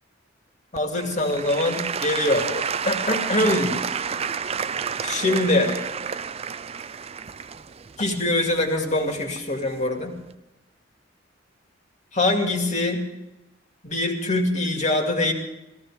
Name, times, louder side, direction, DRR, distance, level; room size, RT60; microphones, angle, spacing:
voice 1, 0.7-3.7 5.0-5.7 8.0-10.1 12.1-13.0 13.8-15.3, left 2 dB, 40° left, 2 dB, 2.5 m, -23 dB
Applause / Crowd, 0.7-9.6 10.2-10.3, right 6 dB, 35° right, 0.4 m, -30 dB
16.5 x 15.0 x 5.0 m, 0.97 s
head